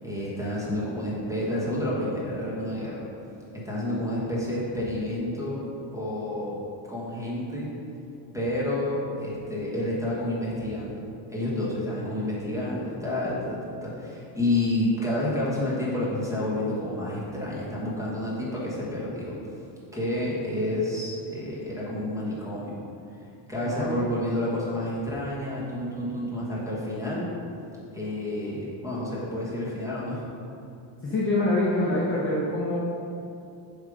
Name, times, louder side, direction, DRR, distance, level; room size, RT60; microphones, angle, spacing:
voice 1, 0.0-3.1 3.5-5.6 5.9-6.6 6.9-7.7 8.3-19.6 19.9-22.8 23.5-27.3 27.9-30.2, left 1 dB, 5° right, -7 dB, 1.5 m, -29 dB
voice 2, 31.0-32.8, left 2 dB, 25° left, -6 dB, 0.7 m, -25 dB
7.4 x 3.8 x 5.0 m, 2.7 s
cardioid pair, 155°, 48 cm